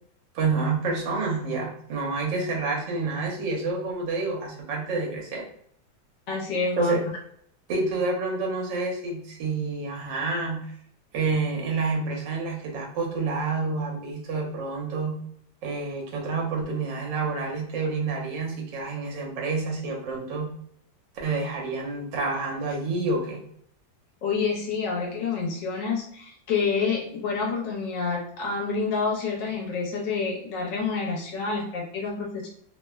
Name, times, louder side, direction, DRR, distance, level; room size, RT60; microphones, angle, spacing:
voice 1, 0.3-5.4 6.8-7.0 7.7-10.7 11.1-15.2 15.6-20.5 21.2-23.4, right 3 dB, 75° right, -1 dB, 1.4 m, -28 dB
voice 2, 6.3-7.0 24.2-32.5, left 4 dB, 75° left, -1 dB, 1.3 m, -28 dB
3.3 x 2.0 x 2.2 m, 0.66 s
omnidirectional pair, 2.1 m